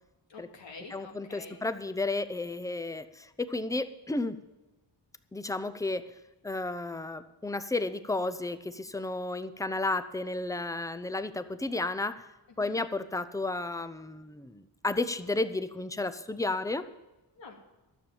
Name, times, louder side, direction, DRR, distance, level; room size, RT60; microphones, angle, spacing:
voice 1, 0.3-1.6 12.6-12.7 17.4-17.5, left 4 dB, 75° left, 1 dB, 2.6 m, -47 dB
voice 2, 0.9-4.4 5.3-6.0 6.4-12.3 12.6-16.8, left 2 dB, 10° left, 12 dB, 0.6 m, -32 dB
12.5 x 7.0 x 8.9 m, 1.1 s
wide cardioid pair, 115°, 44 cm